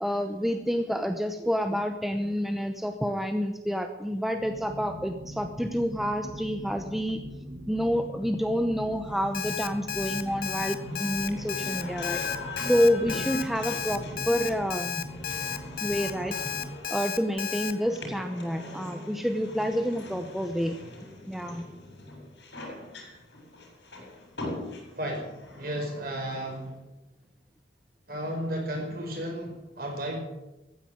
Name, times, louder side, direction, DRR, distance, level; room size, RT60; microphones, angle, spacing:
voice 1, 0.0-7.2 7.7-12.2 12.6-15.1 15.8-16.4 16.9-20.8 21.3-21.7, equal, ahead, 7 dB, 0.7 m, -28 dB
sound 1, 4.4-16.7, equal, 85° right, 3.3 m, -42 dB
sound 2, 9.2-26.7, left 2 dB, 75° left, 6.9 m, -41 dB
Alarm, 9.3-17.7, left 8 dB, 50° left, 1.0 m, -33 dB
voice 2, 25.0-26.8 28.1-30.2, right 1 dB, 50° right, 1 dB, 5.3 m, -33 dB
14.5 x 9.9 x 9.4 m, 0.97 s
head